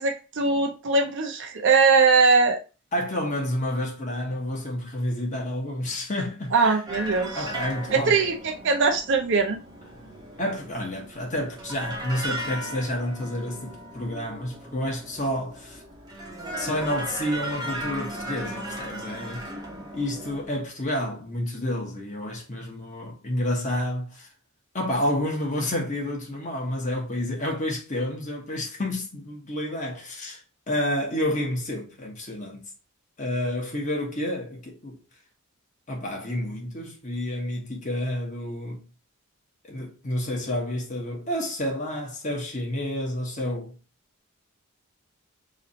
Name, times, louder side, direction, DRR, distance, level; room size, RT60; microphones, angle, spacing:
voice 1, 0.0-2.6 6.5-7.4 7.9-9.6, right 4 dB, 55° right, 0.6 m, -21 dB
voice 2, 2.9-6.7 7.3-8.2 10.4-15.8 16.6-19.4 19.9-24.3 24.7-30.4 30.7-32.7 33.2-35.0 35.9-38.8 39.7-43.8, left 1 dB, 35° left, 1.1 m, -29 dB
sound 1, 6.9-20.4, right 1 dB, 20° right, 0.8 m, -37 dB
3.2 x 2.6 x 4.0 m
head